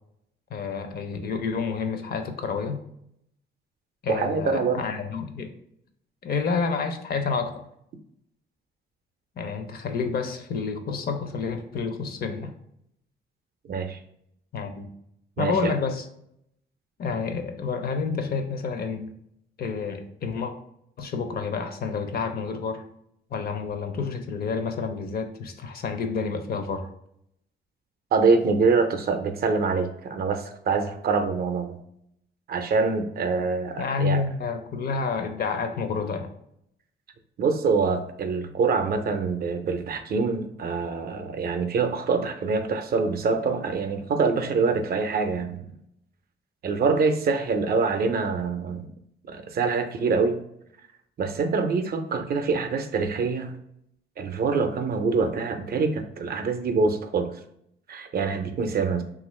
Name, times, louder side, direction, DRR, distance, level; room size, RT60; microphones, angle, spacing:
voice 1, 0.5-2.8 4.0-5.5 6.2-7.6 9.4-12.5 14.5-14.9 15.4-16.1 17.0-19.1 19.6-20.5 21.0-22.8 23.3-26.9 33.8-36.3, left 5 dB, 50° left, 7 dB, 0.5 m, -29 dB
voice 2, 4.1-4.8 13.7-14.0 15.4-15.8 28.1-31.8 32.5-34.2 37.4-45.7 46.6-48.9 49.3-50.4 51.2-53.5 54.2-57.3 57.9-59.0, right 4 dB, 55° right, 7 dB, 0.5 m, -25 dB
2.8 x 2.4 x 3.1 m, 0.74 s
cardioid pair, 100°, 20 cm